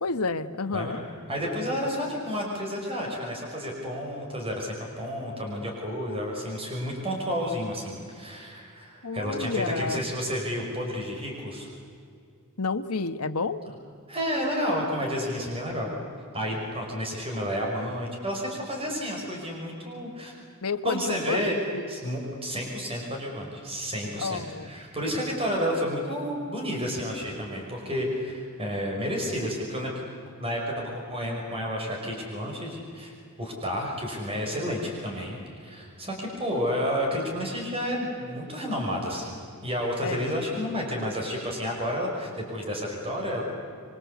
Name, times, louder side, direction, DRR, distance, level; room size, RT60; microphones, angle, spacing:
voice 1, 0.0-1.0 9.0-10.1 12.6-13.6 20.6-21.8 24.2-24.7 40.0-40.4, left 4 dB, 75° left, 9 dB, 1.2 m, -30 dB
voice 2, 0.7-11.7 14.1-15.9 16.3-20.3 20.8-21.6 21.9-30.1 30.4-33.1 33.4-43.4, equal, 25° right, 0 dB, 5.8 m, -31 dB
26.0 x 24.5 x 8.4 m, 2.4 s
head